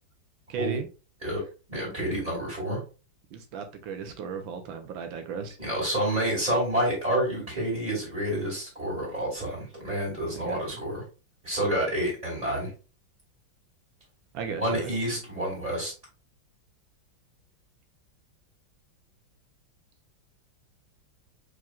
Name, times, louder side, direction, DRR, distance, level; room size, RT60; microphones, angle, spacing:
voice 1, 0.5-0.9 3.3-5.6 10.3-10.8 14.3-15.0, right 6 dB, 85° right, 1.6 m, -36 dB
voice 2, 1.7-2.8 5.6-11.0 11.4-12.7 14.6-15.9, right 1 dB, 20° right, 2.6 m, -28 dB
4.8 x 4.2 x 2.4 m
omnidirectional pair, 2.1 m